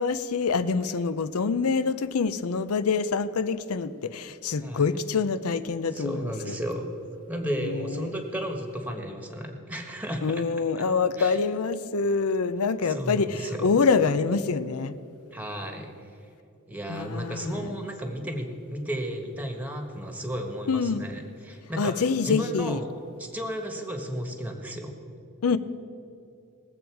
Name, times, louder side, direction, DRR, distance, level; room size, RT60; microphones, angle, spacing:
voice 1, 0.0-6.2 6.4-6.6 7.6-8.1 10.2-14.9 16.9-17.7 20.7-21.0 21.8-22.8 25.4-25.6, left 5 dB, 70° left, 13 dB, 0.6 m, -26 dB
voice 2, 5.9-6.9 7.3-10.4 10.8-10.9 11.2-11.4 12.8-13.8 15.3-15.9 16.7-22.9 23.2-25.0, equal, 5° right, 3 dB, 1.4 m, -33 dB
20.5 x 7.9 x 4.7 m, 2.6 s
head